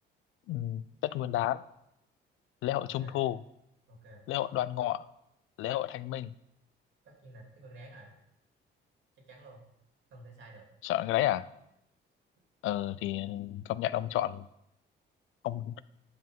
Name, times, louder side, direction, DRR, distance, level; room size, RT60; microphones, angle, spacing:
voice 1, 0.5-1.6 2.6-3.4 4.3-5.1 5.6-6.3 10.8-11.5 12.6-14.5 15.4-15.7, left 13 dB, 85° left, 17 dB, 0.4 m, -31 dB
voice 2, 2.8-3.2 3.9-4.3 7.0-8.1 9.1-9.6 10.1-10.7, right 1 dB, 75° right, 0 dB, 3.0 m, -51 dB
10.0 x 5.5 x 5.4 m, 0.80 s
cardioid pair, 90°, 20 cm